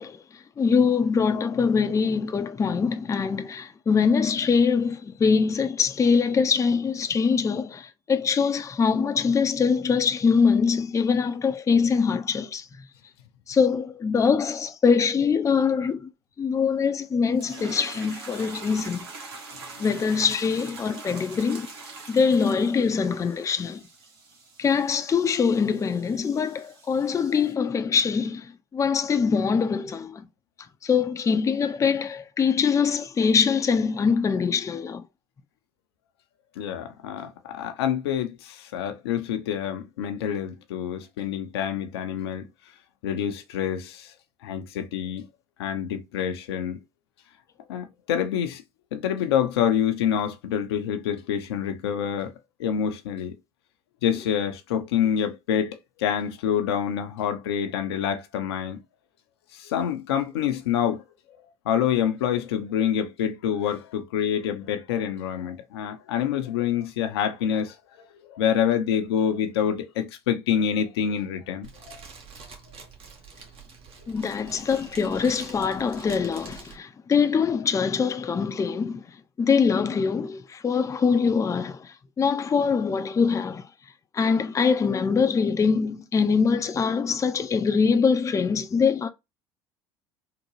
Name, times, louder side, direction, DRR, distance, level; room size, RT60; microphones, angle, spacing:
voice 1, 0.0-12.7 13.5-16.1 16.4-19.1 19.8-21.7 22.1-23.8 24.6-30.2 30.8-35.0 74.1-79.0 79.4-83.7 84.1-89.1, left 5 dB, 25° left, 0.5 m, -23 dB
sound 1, 17.3-27.5, right 3 dB, 80° right, 1.0 m, -43 dB
voice 2, 36.6-42.5 43.0-44.1 44.4-45.3 45.6-46.8 47.7-48.6 48.9-52.3 52.6-53.3 54.0-58.8 59.5-61.0 61.7-72.0 74.0-74.1, left 8 dB, 75° left, 0.6 m, -27 dB
Fire, 71.6-76.7, right 5 dB, 45° right, 1.1 m, -46 dB
3.8 x 2.2 x 3.0 m
hypercardioid pair, 65°, 13 cm